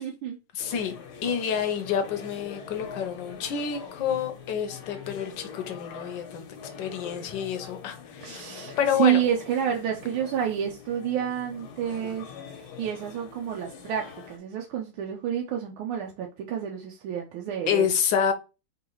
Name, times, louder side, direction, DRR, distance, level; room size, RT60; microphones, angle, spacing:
voice 1, 0.0-0.4 8.2-12.3 12.6-17.9, right 9 dB, 80° right, 1 dB, 1.5 m, -29 dB
voice 2, 0.5-6.5 6.8-8.4 8.8-9.2 17.7-18.3, left 8 dB, 65° left, 7 dB, 1.3 m, -28 dB
sound 1, 0.6-14.4, left 7 dB, 90° left, 1.8 m, -43 dB
3.8 x 3.7 x 3.0 m, 0.29 s
omnidirectional pair, 2.3 m